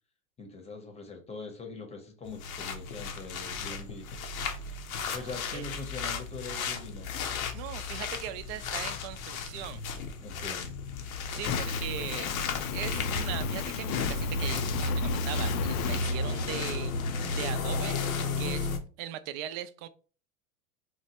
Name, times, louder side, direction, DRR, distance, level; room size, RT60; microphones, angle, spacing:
voice 1, 0.4-4.1 5.1-7.1 10.2-10.8, left 3 dB, 15° left, 0.8 m, -42 dB
sound 1, 2.3-18.8, left 3 dB, 85° left, 0.8 m, -33 dB
voice 2, 5.0-5.7 7.5-10.0 11.3-12.3 12.7-18.0 18.4-18.7 19.0-19.9, right 11 dB, 50° right, 0.5 m, -39 dB
Fire, 11.4-16.0, left 8 dB, 55° left, 0.5 m, -34 dB
4.4 x 2.1 x 2.8 m
hypercardioid pair, 105°, 41 cm